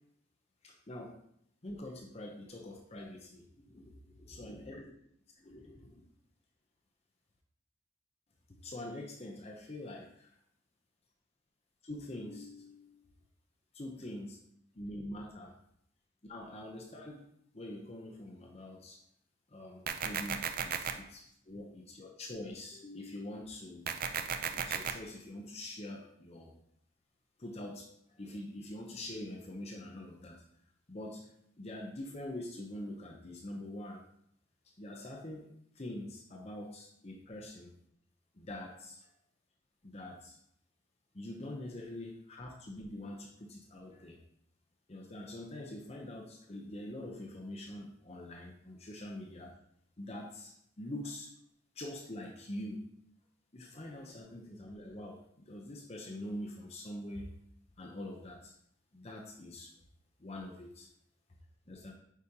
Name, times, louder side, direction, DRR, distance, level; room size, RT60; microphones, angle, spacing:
voice 1, 0.6-1.2 1.6-4.9 5.4-6.1 8.5-10.3 11.8-13.0 13.7-14.4 14.7-15.6 16.2-17.2 17.5-19.0 19.5-23.9 24.5-26.5 27.4-27.9 28.2-30.4 30.9-31.3 31.6-34.0 34.6-37.7 38.3-39.1 39.8-40.4 41.1-44.2 44.9-49.5 50.0-51.3 51.8-52.9 53.5-57.3 57.8-58.5 58.9-59.7 60.2-60.9 61.7-61.9, left 1 dB, 30° left, 1 dB, 0.7 m, -44 dB
sound 1, 19.9-20.9 23.9-24.9, right 7 dB, 45° right, 0.4 m, -34 dB
8.3 x 5.0 x 2.8 m, 0.70 s
head